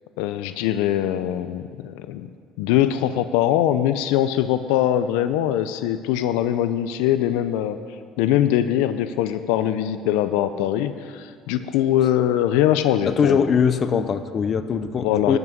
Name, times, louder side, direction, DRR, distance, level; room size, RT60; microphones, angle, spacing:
voice 1, 0.2-2.3 2.6-7.8 8.2-13.4 15.0-15.4, left 11 dB, 85° left, 11 dB, 0.5 m, -22 dB
voice 2, 13.1-15.4, left 6 dB, 40° left, 11 dB, 0.7 m, -21 dB
12.0 x 6.1 x 9.3 m, 2.1 s
supercardioid pair, 105°, 0 cm